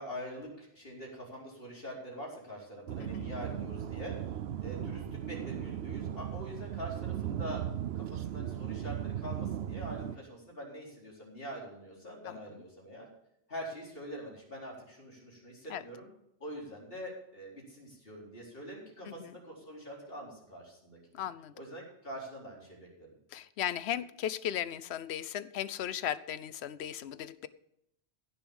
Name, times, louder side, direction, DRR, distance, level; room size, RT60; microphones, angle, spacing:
voice 1, 0.0-4.2 4.6-7.6 7.9-13.1 13.5-16.1 16.4-21.2 21.5-23.2, equal, 55° left, -3 dB, 4.6 m, -44 dB
sound 1, 2.9-10.2, right 10 dB, 70° right, 0.9 m, -37 dB
voice 2, 12.3-12.6 15.7-15.8 19.0-19.4 21.1-21.5 23.3-27.5, left 10 dB, 70° left, 16 dB, 0.9 m, -37 dB
15.5 x 7.1 x 7.1 m, 0.79 s
omnidirectional pair, 1.1 m